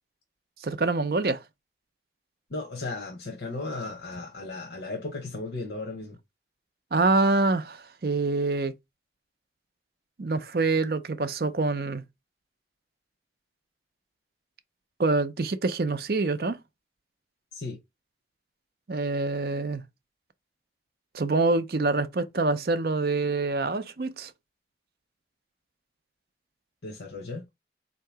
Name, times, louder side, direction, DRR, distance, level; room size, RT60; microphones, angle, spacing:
voice 1, 0.6-1.4 6.9-8.7 10.2-12.0 15.0-16.6 18.9-19.8 21.1-24.3, right 3 dB, 55° right, 0.5 m, -26 dB
voice 2, 2.5-6.2 17.5-17.8 26.8-27.4, left 3 dB, 80° left, 0.9 m, -35 dB
3.7 x 2.8 x 4.6 m
head